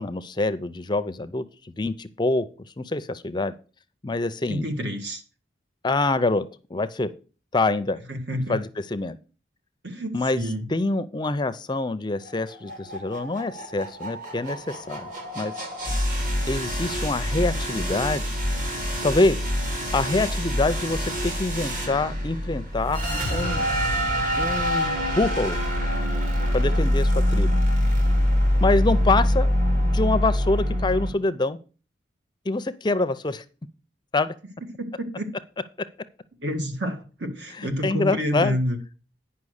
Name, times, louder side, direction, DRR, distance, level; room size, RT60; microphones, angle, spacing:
voice 1, 0.0-2.5 2.8-3.5 4.0-4.7 5.8-7.1 7.5-8.0 8.5-9.2 10.1-10.4 10.7-15.5 16.5-18.2 19.0-19.4 19.9-23.7 24.4-25.6 26.5-27.5 28.6-29.5 29.8-31.6 32.5-33.4 34.1-34.3 37.6-38.6, left 2 dB, 25° left, 13 dB, 0.5 m, -25 dB
voice 2, 4.5-5.2 8.1-8.6 9.8-10.7 34.8-35.3 36.4-38.8, equal, 65° right, 6 dB, 1.8 m, -28 dB
sound 1, 12.3-31.1, equal, 45° right, 2.5 m, -25 dB
9.6 x 5.6 x 6.4 m, 0.36 s
head